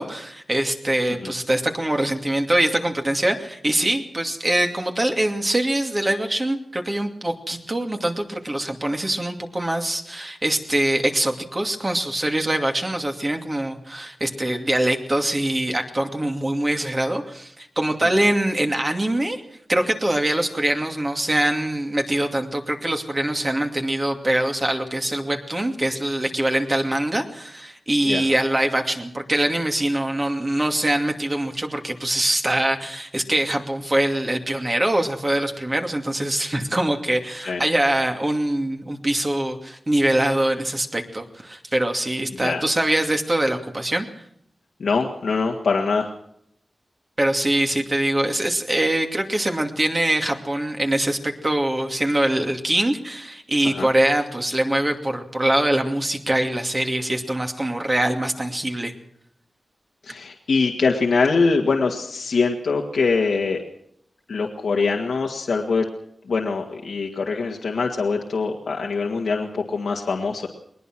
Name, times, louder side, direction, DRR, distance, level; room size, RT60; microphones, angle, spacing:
voice 1, 0.0-19.4 19.7-44.1 47.2-58.9, right 1 dB, 25° right, 4 dB, 2.5 m, -23 dB
voice 2, 44.8-46.1 53.6-53.9 60.0-63.6 64.3-65.9 66.3-70.5, left 4 dB, 85° left, 0 dB, 2.0 m, -23 dB
21.5 x 20.0 x 6.2 m, 0.71 s
wide cardioid pair, 115°, 0 cm